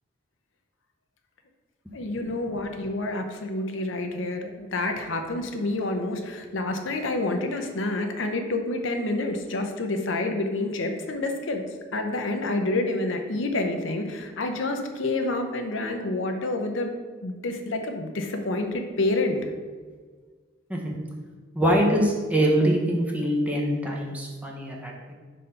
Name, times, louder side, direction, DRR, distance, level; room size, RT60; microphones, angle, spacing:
voice 1, 1.9-11.6 11.9-16.9 17.2-19.5, left 2 dB, 75° left, 4 dB, 0.7 m, -28 dB
voice 2, 21.5-25.1, equal, 5° right, -2 dB, 0.9 m, -24 dB
5.0 x 4.2 x 5.6 m, 1.5 s
head